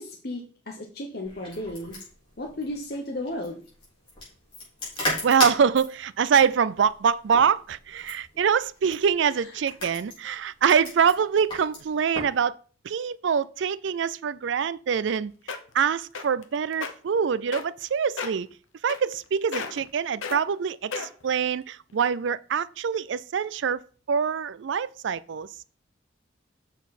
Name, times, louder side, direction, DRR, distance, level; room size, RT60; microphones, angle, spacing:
voice 1, 0.0-2.0 2.4-3.6 9.4-9.5, left 1 dB, 50° left, 1.0 m, -34 dB
sound 1, 1.2-12.4, left 1 dB, 25° left, 4.2 m, -36 dB
voice 2, 5.2-12.6 12.8-15.3 15.7-18.5 18.8-23.8 24.1-25.5, right 7 dB, 70° right, 0.4 m, -24 dB
sound 2, 15.0-15.1 15.5-15.8 16.1-16.4 16.7-16.9 17.5-17.9 18.2-18.4 18.9-19.2 19.5-19.9 20.2-20.4 20.9-21.3 21.9-22.0, left 5 dB, 90° left, 0.9 m, -33 dB
7.1 x 6.2 x 4.2 m
head